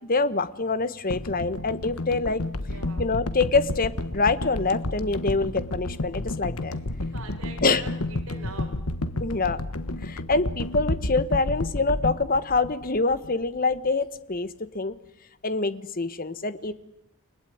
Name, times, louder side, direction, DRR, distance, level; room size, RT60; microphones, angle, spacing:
voice 1, 0.1-2.4 3.0-6.7 7.6-7.8 9.2-9.6 10.0-14.5 14.7-14.9 15.4-16.7, left 3 dB, 40° left, 14 dB, 1.3 m, -25 dB
sound 1, 1.1-13.4 13.7-13.9, left 2 dB, 80° left, 1.4 m, -31 dB
voice 2, 2.7-3.1 7.0-8.7 16.6-16.7, right 3 dB, 65° right, 0 dB, 6.8 m, -43 dB
29.5 x 19.5 x 9.5 m, 0.80 s
head